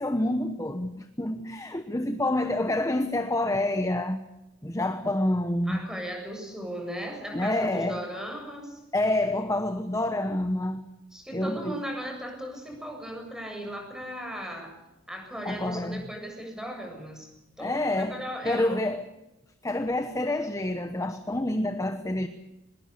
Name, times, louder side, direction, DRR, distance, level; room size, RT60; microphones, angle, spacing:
voice 1, 0.0-4.2 4.6-5.9 7.3-8.0 8.9-10.8 11.3-11.8 15.4-16.0 17.6-19.0 19.6-22.3, left 1 dB, 15° left, 1.1 m, -28 dB
voice 2, 5.7-8.8 11.1-14.8 15.1-17.3 17.6-18.8, equal, 5° right, 7.4 m, -37 dB
24.0 x 22.0 x 6.9 m
head